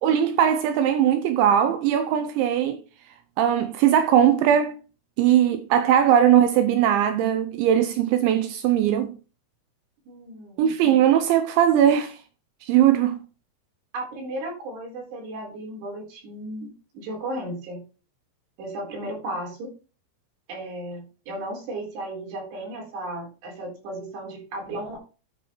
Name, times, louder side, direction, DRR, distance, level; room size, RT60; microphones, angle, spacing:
voice 1, 0.0-2.8 3.4-4.8 5.2-9.2 10.6-12.2 12.7-13.2, right 10 dB, 85° right, 2.7 m, -20 dB
voice 2, 10.1-10.7 13.9-17.8 18.6-19.7 20.5-25.0, right 1 dB, 55° right, 5.9 m, -35 dB
10.5 x 9.4 x 3.1 m
omnidirectional pair, 5.9 m